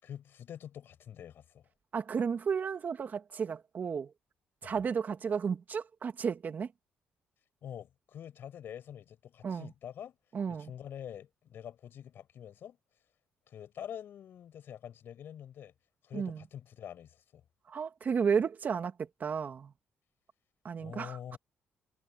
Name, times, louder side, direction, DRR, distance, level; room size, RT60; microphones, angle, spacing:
voice 1, 0.0-1.7 4.6-4.8 7.6-10.2 10.5-12.8 13.5-15.7 16.0-17.4 20.8-21.4, left 9 dB, 65° left, 6.1 m, -46 dB
voice 2, 1.9-4.1 4.6-6.7 9.4-9.7 10.3-10.7 16.1-16.4 17.7-18.9 19.2-19.7 20.6-21.4, right 6 dB, 50° right, 2.4 m, -33 dB
cardioid pair, 75°, 4 cm